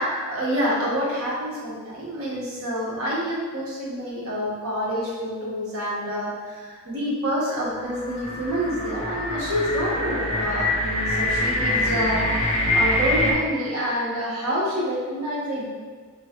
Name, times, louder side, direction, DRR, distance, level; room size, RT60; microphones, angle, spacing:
voice 1, 0.0-12.4 12.7-15.7, equal, 75° right, -5 dB, 1.3 m, -27 dB
sound 1, 7.7-13.3, left 1 dB, 30° left, 0.6 m, -25 dB
5.6 x 3.0 x 2.9 m, 1.5 s
head